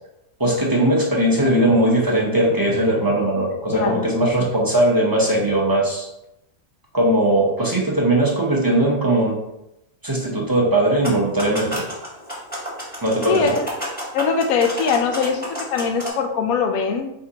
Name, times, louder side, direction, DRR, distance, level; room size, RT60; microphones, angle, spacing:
voice 1, 0.4-6.1 6.9-9.4 10.0-11.8 13.0-13.5, right 1 dB, 25° right, -4 dB, 0.5 m, -19 dB
voice 2, 3.7-4.1 13.3-13.7 14.1-17.1, left 5 dB, 85° left, 5 dB, 1.0 m, -22 dB
sound 1, 11.0-16.1, equal, 5° left, 1.1 m, -31 dB
4.5 x 3.6 x 2.8 m, 0.86 s
omnidirectional pair, 1.4 m